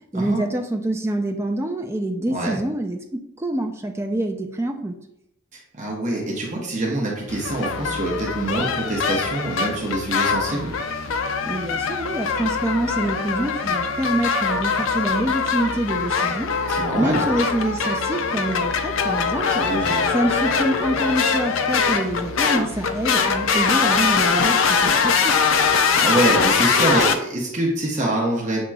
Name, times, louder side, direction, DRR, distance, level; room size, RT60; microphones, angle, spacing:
voice 1, 0.1-4.9 11.4-16.5 16.9-19.7 20.1-25.3, right 1 dB, 15° right, 4 dB, 0.4 m, -26 dB
voice 2, 5.7-10.7 16.7-17.2 19.5-20.1 25.9-28.6, right 2 dB, 35° right, -2 dB, 0.9 m, -25 dB
sound 1, 7.3-27.2, left 5 dB, 70° left, 0.4 m, -22 dB
7.2 x 2.9 x 2.3 m, 0.80 s
head